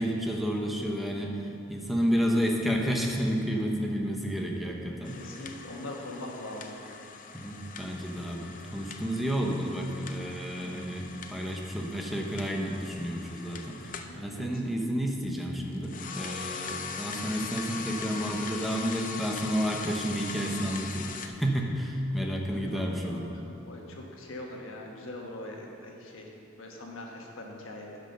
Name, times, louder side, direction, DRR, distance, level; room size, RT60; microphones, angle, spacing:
voice 1, 0.0-1.4 1.7-5.2 7.3-23.3, equal, ahead, 0 dB, 0.9 m, -31 dB
sound 1, 5.0-14.2 15.7-21.3, left 6 dB, 40° left, 0.5 m, -41 dB
voice 2, 5.1-7.0 14.1-14.5 22.5-23.2 23.7-26.3 26.5-28.0, left 1 dB, 70° left, 0 dB, 1.4 m, -42 dB
9.7 x 5.4 x 6.6 m, 2.7 s
head